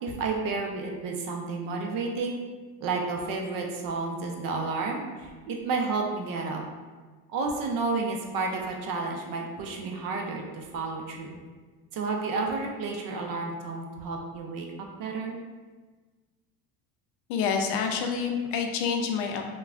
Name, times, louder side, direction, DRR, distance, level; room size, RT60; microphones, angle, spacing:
voice 1, 0.0-2.4 2.8-6.6 7.3-11.4 11.9-14.7 15.0-15.4, right 3 dB, 50° right, 1 dB, 0.6 m, -31 dB
voice 2, 17.3-19.4, left 6 dB, 65° left, 3 dB, 0.5 m, -27 dB
3.2 x 2.2 x 2.4 m, 1.4 s
supercardioid pair, 95°, 44 cm